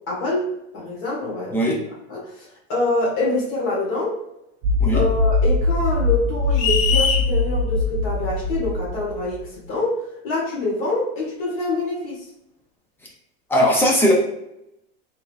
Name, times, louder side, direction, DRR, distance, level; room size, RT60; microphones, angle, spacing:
voice 1, 0.0-1.6 2.1-4.2 4.9-12.2, left 2 dB, 45° left, -5 dB, 1.5 m, -25 dB
voice 2, 1.5-1.8 4.8-5.0 13.5-14.1, equal, 5° left, -2 dB, 0.4 m, -18 dB
sound 1, 4.6-9.5, left 2 dB, 60° right, 0.5 m, -22 dB
sound 2, 6.6-7.3, left 6 dB, 70° left, 0.5 m, -21 dB
3.5 x 3.1 x 2.3 m, 0.83 s
supercardioid pair, 165°, 29 cm